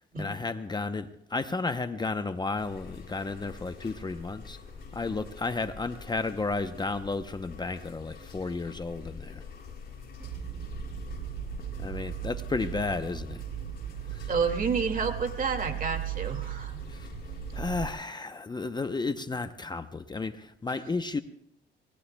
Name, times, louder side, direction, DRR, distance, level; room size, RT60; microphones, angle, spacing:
voice 1, 0.0-4.6 4.9-9.4 11.8-13.4 14.1-14.3 16.9-17.1 17.5-21.2, left 3 dB, 20° left, 9 dB, 0.7 m, -33 dB
sound 1, 2.6-17.9, left 5 dB, 50° left, 7.9 m, -45 dB
sound 2, 10.2-17.9, right 14 dB, 60° right, 0.5 m, -37 dB
voice 2, 14.3-16.8, right 5 dB, 45° right, 5 dB, 2.1 m, -30 dB
25.5 x 20.0 x 2.2 m, 0.75 s
cardioid pair, 90°, 20 cm